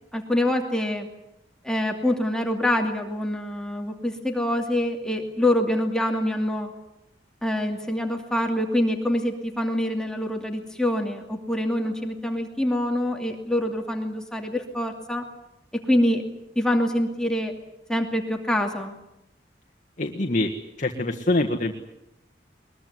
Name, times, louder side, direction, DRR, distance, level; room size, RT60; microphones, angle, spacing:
voice 1, 0.1-1.1 1.6-6.7 7.4-15.2 15.7-16.2 16.6-17.5 17.9-18.9, left 1 dB, 5° left, 3 dB, 2.6 m, -25 dB
voice 2, 20.0-20.5 20.8-21.7, left 2 dB, 45° left, 3 dB, 1.7 m, -24 dB
22.0 x 22.0 x 9.7 m, 0.88 s
head